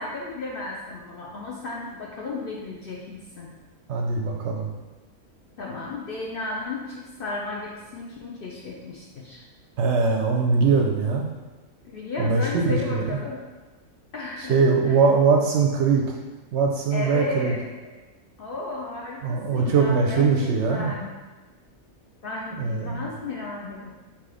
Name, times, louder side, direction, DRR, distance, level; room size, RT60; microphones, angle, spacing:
voice 1, 0.0-3.5 5.6-9.4 11.8-13.4 14.1-14.6 14.9-15.0 16.9-18.0 18.4-21.1 22.2-23.9, left 3 dB, 55° left, -3 dB, 0.6 m, -34 dB
voice 2, 3.9-4.7 9.8-11.3 12.2-13.0 14.5-16.2 16.5-17.5 19.2-20.9 22.6-23.0, right 4 dB, 65° right, 1 dB, 0.7 m, -21 dB
3.8 x 2.9 x 4.8 m, 1.2 s
omnidirectional pair, 1.4 m